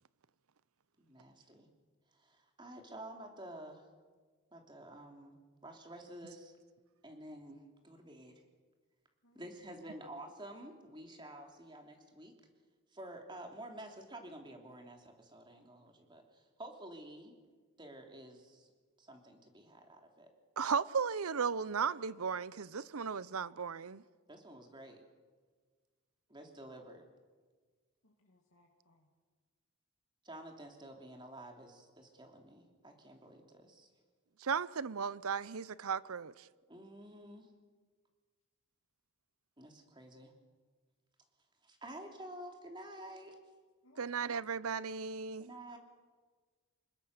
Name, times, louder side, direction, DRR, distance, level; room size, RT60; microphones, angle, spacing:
voice 1, 1.0-1.7 2.1-3.9 4.5-5.4 5.6-6.5 7.0-8.3 9.3-12.3 12.9-17.3 17.8-18.7 19.0-20.3 24.3-25.0 26.3-27.0 30.2-33.9 36.7-37.5 39.6-40.3 41.6-43.4 45.4-45.8, right 1 dB, 20° right, 3.2 m, -50 dB
voice 2, 9.2-10.1 28.0-29.1 43.8-44.4, left 1 dB, 75° left, 2.6 m, -66 dB
voice 3, 20.6-24.0 34.4-36.5 44.0-45.5, right 6 dB, 85° right, 0.7 m, -35 dB
27.0 x 21.0 x 6.7 m
head